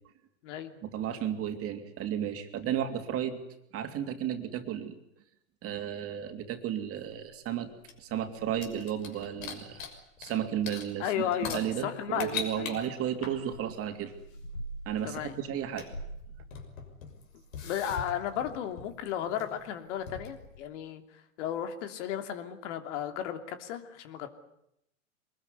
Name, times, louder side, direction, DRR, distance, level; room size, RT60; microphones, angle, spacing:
voice 1, 0.8-3.4 3.7-5.0 5.6-7.7 8.0-9.8 10.2-11.1 11.4-14.1 14.8-15.9, right 10 dB, 35° right, 6 dB, 3.1 m, -33 dB
sound 1, 6.9-10.4 10.6-20.6, left 4 dB, 80° left, 6.3 m, -42 dB
voice 2, 11.0-12.8 15.0-15.4 17.6-21.0 21.4-24.3, left 9 dB, 60° left, 7 dB, 3.1 m, -34 dB
24.0 x 21.0 x 9.7 m, 0.79 s
hypercardioid pair, 120°, 40 cm